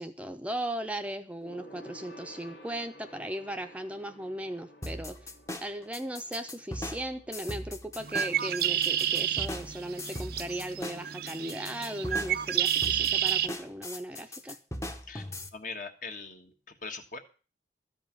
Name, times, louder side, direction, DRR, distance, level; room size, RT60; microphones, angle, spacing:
voice 1, 0.0-5.2 5.6-14.6, right 1 dB, 10° right, 7 dB, 0.7 m, -37 dB
Gong, 1.4-11.2 11.5-11.7 12.0-12.1, equal, 65° left, 1.8 m, -54 dB
sound 1, 4.8-15.5, left 1 dB, 15° left, 0.9 m, -39 dB
Bird, 8.0-13.5, right 10 dB, 60° right, 0.5 m, -30 dB
voice 2, 15.5-17.2, left 4 dB, 50° left, 6 dB, 1.6 m, -41 dB
13.5 x 5.4 x 8.9 m, 0.37 s
head